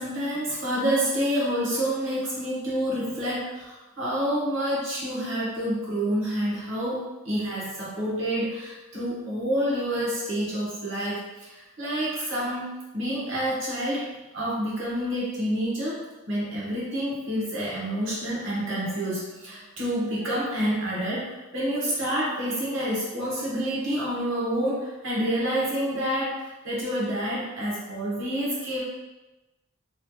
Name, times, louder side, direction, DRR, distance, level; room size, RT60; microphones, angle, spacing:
voice 1, 0.0-28.8, equal, 60° right, -7 dB, 1.2 m, -28 dB
3.2 x 2.9 x 2.3 m, 1.1 s
head